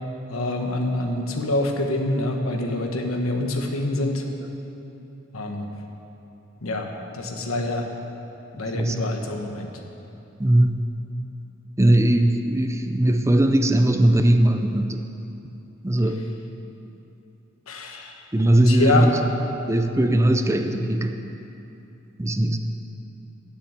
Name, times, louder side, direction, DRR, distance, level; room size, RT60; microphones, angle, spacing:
voice 1, 0.3-4.2 5.3-5.7 6.6-6.9 7.1-7.9 8.6-9.7 17.7-18.1 18.7-19.1, left 2 dB, 90° left, 3 dB, 1.2 m, -26 dB
voice 2, 10.4-10.8 11.8-15.0 15.8-16.2 18.3-19.2 19.7-21.2 22.2-22.6, right 1 dB, 15° right, 6 dB, 0.5 m, -19 dB
10.0 x 7.1 x 8.9 m, 2.9 s
head